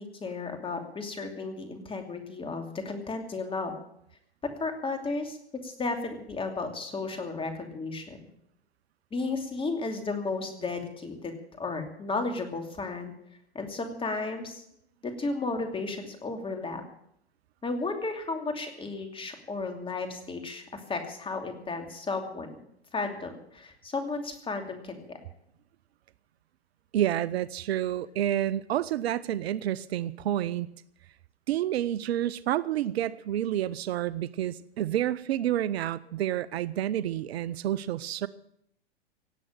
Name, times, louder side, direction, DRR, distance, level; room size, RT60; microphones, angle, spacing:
voice 1, 0.0-3.7 4.4-5.4 5.6-8.2 9.1-13.1 13.5-14.6 15.0-16.8 17.6-22.6 22.9-25.2, left 3 dB, 15° left, 5 dB, 2.8 m, -34 dB
voice 2, 26.9-30.7 31.5-38.3, right 12 dB, 65° right, 18 dB, 0.7 m, -29 dB
17.5 x 7.7 x 9.0 m, 0.75 s
hypercardioid pair, 110°, 33 cm